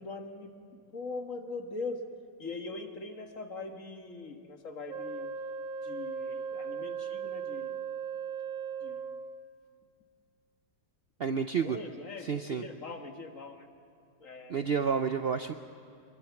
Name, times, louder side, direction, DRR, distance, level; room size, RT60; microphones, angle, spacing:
voice 1, 0.0-2.1 2.4-5.3 5.8-7.8 8.8-9.1 11.6-13.7 14.2-14.6, left 3 dB, 45° left, 5 dB, 1.9 m, -41 dB
Wind instrument woodwind instrument, 4.9-9.5, right 6 dB, 45° right, 0.6 m, -37 dB
voice 2, 11.2-11.8 12.2-12.6 14.5-15.5, right 6 dB, 85° right, 9 dB, 0.5 m, -30 dB
25.0 x 21.5 x 7.1 m, 2.7 s
omnidirectional pair, 1.9 m